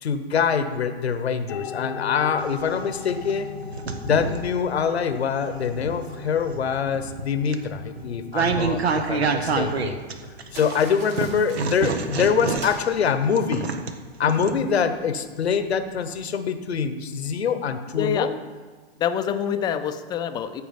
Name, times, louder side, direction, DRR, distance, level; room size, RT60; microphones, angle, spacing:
voice 1, 0.0-3.5 4.0-10.0 10.5-13.7 14.2-18.3, left 6 dB, 90° left, 10 dB, 1.0 m, -24 dB
sound 1, 1.5-16.2, left 7 dB, 50° left, 0.8 m, -41 dB
sound 2, 2.4-4.6 5.2-10.7 11.2-14.5, right 5 dB, 85° right, 1.1 m, -28 dB
sound 3, 10.5-13.9, right 3 dB, 70° right, 2.1 m, -43 dB
voice 2, 18.0-18.3 19.0-20.6, left 8 dB, 15° left, 8 dB, 0.4 m, -26 dB
14.5 x 5.1 x 5.2 m, 1.4 s
hypercardioid pair, 125°, 31 cm